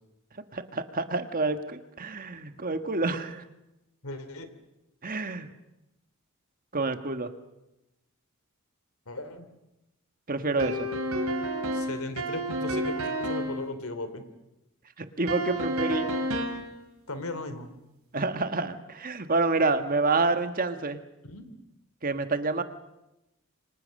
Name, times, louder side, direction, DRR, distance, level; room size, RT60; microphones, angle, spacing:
voice 1, 0.5-3.4 5.0-5.5 6.7-7.3 10.3-10.9 15.0-16.1 18.1-21.0 22.0-22.6, right 3 dB, 40° right, 9 dB, 1.5 m, -28 dB
voice 2, 4.0-4.5 9.1-9.5 11.7-14.2 17.1-17.7 21.2-21.5, left 2 dB, 80° left, 11 dB, 3.0 m, -37 dB
sound 1, 10.6-13.6 15.3-16.7, right 1 dB, 90° right, 3.6 m, -30 dB
28.0 x 24.5 x 6.5 m, 0.94 s
head